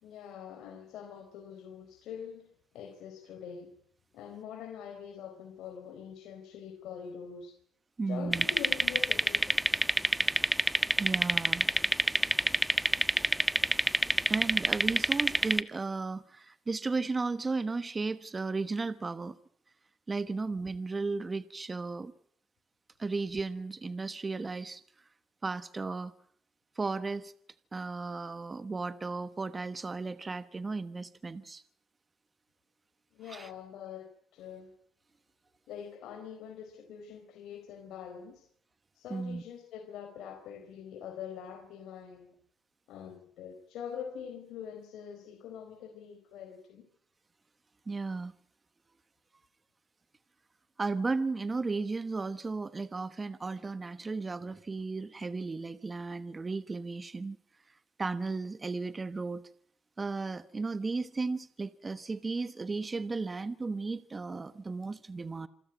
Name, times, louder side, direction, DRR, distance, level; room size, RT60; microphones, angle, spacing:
voice 1, 0.0-3.7 4.1-7.5 8.0-9.7 33.1-34.7 35.7-38.5 38.9-42.4 42.9-46.8, left 8 dB, 85° left, 4.2 m, -44 dB
voice 2, 8.0-8.5 11.0-11.7 14.3-19.4 20.1-22.1 23.0-24.8 25.4-26.1 26.7-27.3 27.7-31.6 33.3-33.5 39.1-39.4 47.9-48.3 50.8-57.4 58.0-59.4 60.0-65.5, right 3 dB, 30° right, 1.2 m, -34 dB
sound 1, 8.3-15.6, right 1 dB, 5° right, 1.3 m, -27 dB
27.0 x 14.0 x 9.4 m
cardioid pair, 90°, 0 cm